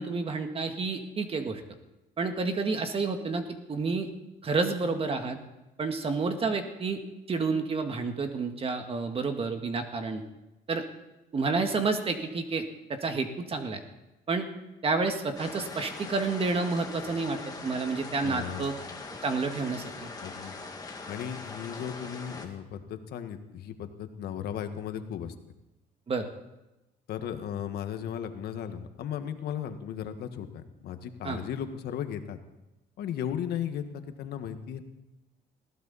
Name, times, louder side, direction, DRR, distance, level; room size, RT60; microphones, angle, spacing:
voice 1, 0.0-1.6 2.2-4.1 4.4-5.4 5.8-7.0 7.3-10.2 10.7-10.8 11.3-13.8 14.3-14.5 14.8-18.7 19.2-20.1 26.1-26.3 31.2-31.4, right 4 dB, 35° right, 6 dB, 1.7 m, -30 dB
sound 1, 15.4-22.5, left 3 dB, 20° left, 2.3 m, -41 dB
voice 2, 18.2-18.7 20.2-20.6 21.1-25.3 27.1-32.4 33.0-34.8, left 9 dB, 70° left, 8 dB, 1.5 m, -36 dB
20.5 x 15.5 x 4.1 m, 0.98 s
cardioid pair, 110°, 17 cm